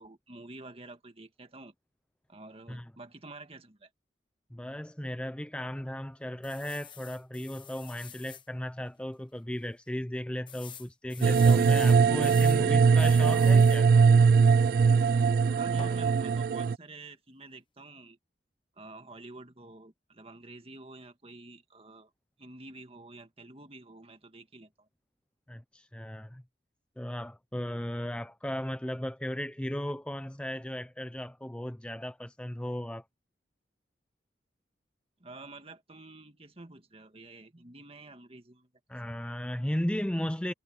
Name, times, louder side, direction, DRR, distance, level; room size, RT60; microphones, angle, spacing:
voice 1, 0.0-1.7 2.3-3.9 15.5-18.2 18.8-22.1 22.4-24.9 35.2-38.7, right 2 dB, 35° right, 1.8 m, -49 dB
voice 2, 4.5-13.9 25.5-26.4 27.0-33.0 38.9-40.5, left 1 dB, 5° left, 0.5 m, -36 dB
sound 1, 6.4-8.5 9.0-9.1 9.4-9.5 10.5-12.6 13.0-13.9 15.8-16.0, left 8 dB, 30° left, 1.1 m, -47 dB
sound 2, 11.2-16.8, right 5 dB, 55° right, 0.3 m, -21 dB
head